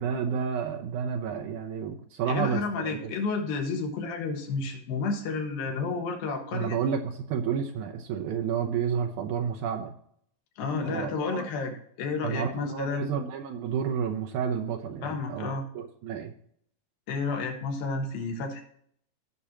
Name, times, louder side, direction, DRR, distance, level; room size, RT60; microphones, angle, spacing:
voice 1, 0.0-3.1 6.5-9.9 10.8-11.4 12.2-16.3, right 7 dB, 75° right, 4 dB, 1.9 m, -31 dB
voice 2, 2.3-6.8 10.6-11.7 12.0-13.1 15.0-15.7 17.1-18.6, left 4 dB, 85° left, 3 dB, 3.2 m, -31 dB
15.0 x 6.2 x 2.9 m, 0.64 s
omnidirectional pair, 4.0 m